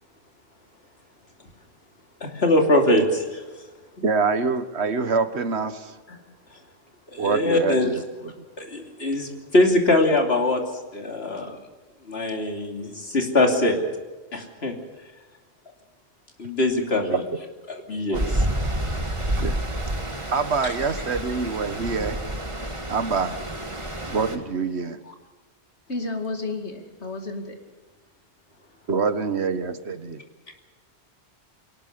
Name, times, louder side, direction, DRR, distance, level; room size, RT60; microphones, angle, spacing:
voice 1, 2.2-3.4 7.1-7.9 8.6-10.6 10.9-11.6 12.1-13.8 14.3-14.7 16.4-17.2 17.7-18.5 30.5-30.6, left 1 dB, 65° left, 3 dB, 3.2 m, -22 dB
voice 2, 4.0-6.0 7.2-8.3 17.1-17.2 18.1-18.4 19.4-19.6 20.3-22.2 22.9-23.4 24.1-25.0 28.9-30.2, right 4 dB, 75° right, 11 dB, 1.6 m, -25 dB
Stream, 18.1-24.4, right 1 dB, 25° right, 2.1 m, -29 dB
voice 3, 25.9-27.6, left 3 dB, 80° left, 5 dB, 2.9 m, -31 dB
23.0 x 19.0 x 6.7 m, 1.3 s
omnidirectional pair, 1.1 m